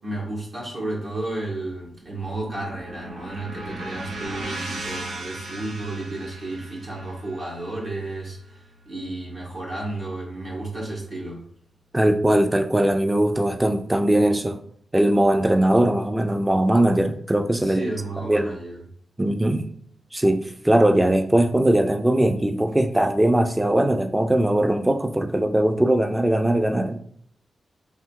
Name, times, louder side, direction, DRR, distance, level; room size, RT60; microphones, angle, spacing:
voice 1, 0.0-11.4 17.6-18.8, right 2 dB, 65° right, 1.5 m, -32 dB
sound 1, 1.9-10.0, right 1 dB, 80° right, 0.7 m, -38 dB
voice 2, 11.9-14.6 14.9-17.8 18.2-18.6 19.2-19.7 20.1-27.0, right 1 dB, 15° right, 0.4 m, -20 dB
3.5 x 2.8 x 2.9 m
cardioid pair, 55°, 0 cm